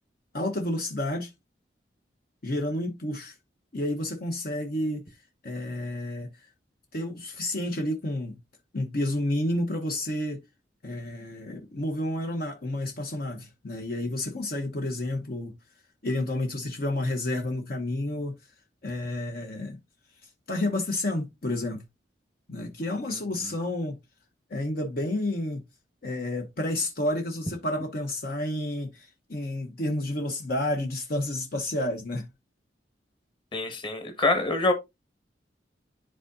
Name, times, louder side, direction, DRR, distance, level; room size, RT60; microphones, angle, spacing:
voice 1, 0.3-1.3 2.4-3.4 3.7-5.2 5.4-6.5 6.9-8.4 8.7-10.4 10.8-15.5 16.0-18.4 18.8-19.8 20.2-21.8 22.5-24.0 24.5-25.6 26.0-32.3, left 1 dB, 55° left, 1.0 m, -30 dB
voice 2, 33.5-34.7, left 2 dB, 30° left, 1.5 m, -25 dB
11.0 x 3.8 x 2.6 m
head